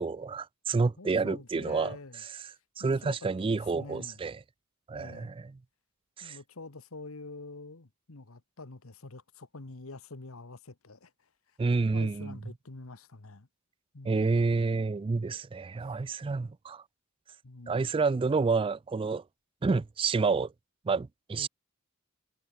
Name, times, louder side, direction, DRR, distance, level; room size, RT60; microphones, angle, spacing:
voice 1, 0.0-2.0 2.8-4.4 4.9-5.5 6.2-6.4 11.6-12.4 14.1-16.8 17.7-19.2 19.6-20.5 20.9-21.5, right 4 dB, 25° right, 0.3 m, -29 dB
voice 2, 1.0-2.2 2.8-4.2 4.9-5.4 6.2-11.1 11.9-13.5 13.9-14.3 17.4-17.9 21.3-21.5, left 3 dB, 80° left, 1.4 m, -46 dB
head